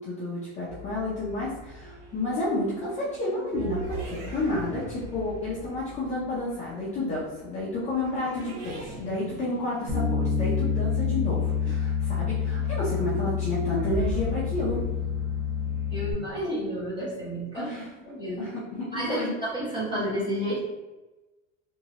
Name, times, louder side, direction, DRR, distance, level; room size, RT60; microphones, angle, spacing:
voice 1, 0.0-14.8 17.5-17.9 18.4-19.3, left 2 dB, 20° left, -8 dB, 0.5 m, -31 dB
sound 1, 0.7-18.1, right 2 dB, 90° right, 1.2 m, -41 dB
Bass guitar, 9.9-16.1, left 6 dB, 40° right, 0.7 m, -28 dB
voice 2, 15.9-17.7 18.0-18.5 18.9-19.2 19.5-20.6, equal, 15° right, -8 dB, 1.1 m, -31 dB
3.1 x 2.6 x 2.8 m, 1.1 s
cardioid pair, 170°, 35 cm